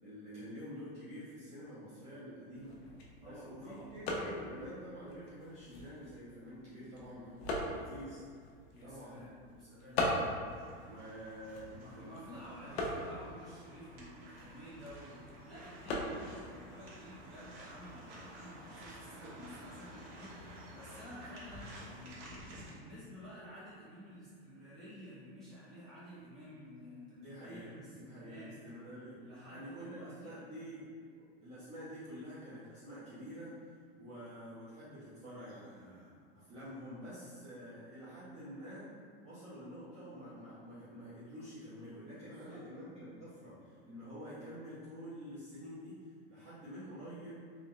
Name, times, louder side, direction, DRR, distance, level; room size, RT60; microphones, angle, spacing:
voice 1, 0.0-2.8 3.2-8.2 8.8-9.2 10.8-11.6 11.9-12.8 27.1-29.2 29.5-30.9 31.4-33.5 34.0-38.9 39.2-46.0 46.3-47.4, equal, 20° right, -13 dB, 1.1 m, -48 dB
sound 1, 2.5-18.1, left 1 dB, 80° left, 0.8 m, -42 dB
voice 2, 3.2-3.9 8.7-10.0 11.7-22.4 22.7-28.5 29.2-30.4 42.2-42.6, equal, ahead, -15 dB, 1.5 m, -52 dB
sound 2, 10.5-22.7, right 1 dB, 50° right, 1.2 m, -52 dB
3.7 x 3.0 x 3.1 m, 2.1 s
supercardioid pair, 160°, 30 cm